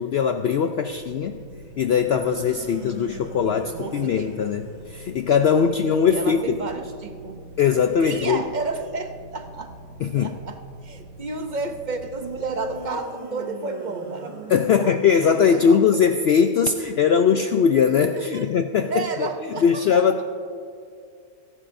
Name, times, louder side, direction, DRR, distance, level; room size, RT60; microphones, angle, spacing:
voice 1, 0.0-1.4 1.8-6.6 7.6-8.4 10.0-10.4 14.5-19.3 19.6-20.2, left 7 dB, 75° left, 7 dB, 0.5 m, -20 dB
sound 1, 0.8-12.9, right 1 dB, 70° right, 1.7 m, -44 dB
sound 2, 2.0-5.2 12.4-15.3, left 1 dB, 20° right, 1.8 m, -40 dB
voice 2, 3.4-4.4 5.5-5.7 6.1-7.4 8.0-9.7 10.2-14.9 15.3-15.8 18.1-18.5 18.9-20.0, right 4 dB, 50° right, 6 dB, 0.5 m, -32 dB
28.0 x 11.0 x 2.6 m, 2.3 s
omnidirectional pair, 1.6 m